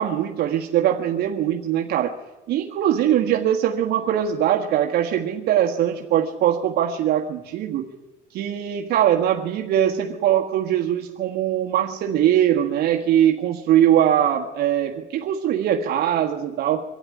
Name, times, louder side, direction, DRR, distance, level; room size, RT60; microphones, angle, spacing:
voice 1, 0.0-2.1 2.5-7.9 8.3-16.8, right 10 dB, 75° right, 2 dB, 1.6 m, -21 dB
23.5 x 13.0 x 9.7 m, 1.1 s
cardioid pair, 110°, 17 cm